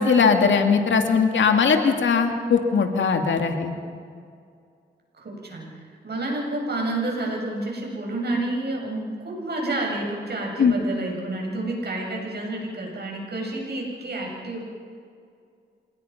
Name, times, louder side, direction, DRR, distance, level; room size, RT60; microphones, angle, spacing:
voice 1, 0.0-3.7 10.6-10.7, left 5 dB, 80° left, 5 dB, 2.2 m, -20 dB
voice 2, 5.2-5.7 6.0-14.6, right 2 dB, 60° right, -1 dB, 7.9 m, -29 dB
27.5 x 18.5 x 5.9 m, 2.2 s
cardioid pair, 60°, 19 cm